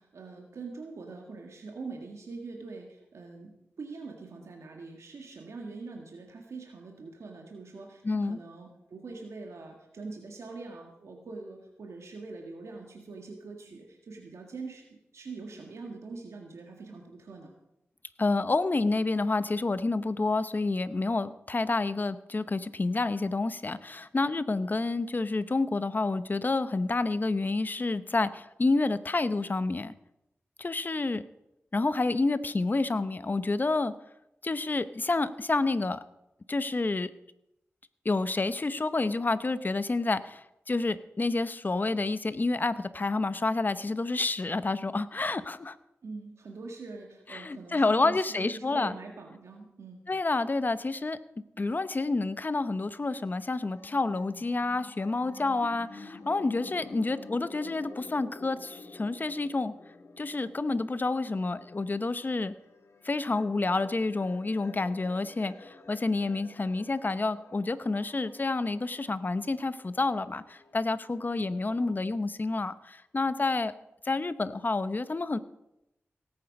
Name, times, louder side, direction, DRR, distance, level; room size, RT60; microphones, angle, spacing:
voice 1, 0.0-17.6 46.0-50.1, right 3 dB, 90° right, 1 dB, 1.7 m, -43 dB
voice 2, 8.0-8.4 18.2-29.9 30.6-31.2 31.7-33.9 34.4-36.0 36.5-37.1 38.0-45.8 47.3-48.9 50.1-51.2 51.6-59.7 60.2-62.5 63.0-73.7 74.0-75.4, left 3 dB, 40° left, 13 dB, 0.8 m, -29 dB
sound 1, 52.9-72.0, left 3 dB, 70° left, 1.5 m, -50 dB
17.5 x 8.8 x 5.4 m, 0.87 s
cardioid pair, 60°, 5 cm